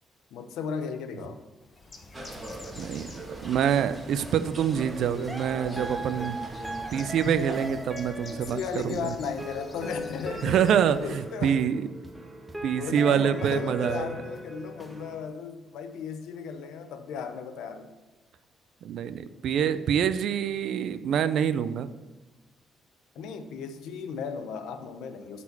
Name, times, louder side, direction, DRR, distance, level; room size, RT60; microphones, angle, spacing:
voice 1, 0.3-1.4 8.2-10.6 11.0-11.6 12.6-17.9 23.1-25.4, left 6 dB, 85° left, 8 dB, 0.7 m, -36 dB
Bird, 1.6-11.3, left 2 dB, 30° left, 1.2 m, -49 dB
sound 1, 2.1-7.7, right 1 dB, 25° right, 1.6 m, -41 dB
voice 2, 2.8-3.1 3.4-6.4 6.9-8.6 8.8-9.1 10.4-11.9 12.6-14.2 18.8-21.9, right 8 dB, 75° right, 12 dB, 0.5 m, -26 dB
sound 2, 4.8-15.3, right 1 dB, 10° right, 1.1 m, -39 dB
8.8 x 4.3 x 7.0 m, 1.2 s
cardioid pair, 90°, 0 cm